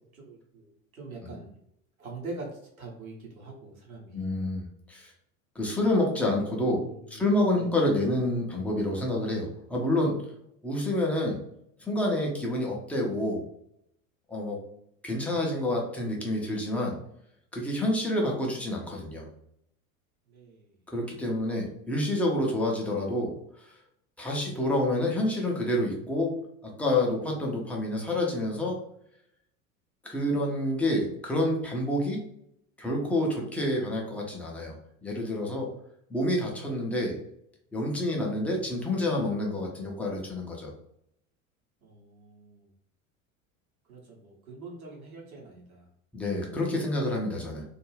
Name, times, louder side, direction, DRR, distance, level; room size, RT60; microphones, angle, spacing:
voice 1, 0.1-1.5 2.0-4.3 6.7-7.2 7.5-7.7 20.3-20.7 21.0-21.1 41.8-42.7 43.9-45.9, right 3 dB, 80° right, -2 dB, 0.8 m, -44 dB
voice 2, 4.1-5.1 5.6-6.8 7.1-10.2 10.6-11.4 11.9-13.4 14.3-14.6 15.0-17.0 17.5-19.3 20.9-23.7 24.2-26.3 26.6-28.8 30.0-32.2 32.8-34.8 35.0-35.7 36.1-37.2 37.7-40.7 46.1-47.6, left 1 dB, 5° left, -2 dB, 0.4 m, -28 dB
2.4 x 2.1 x 3.1 m, 0.74 s
figure-of-eight pair, 75°, 42 cm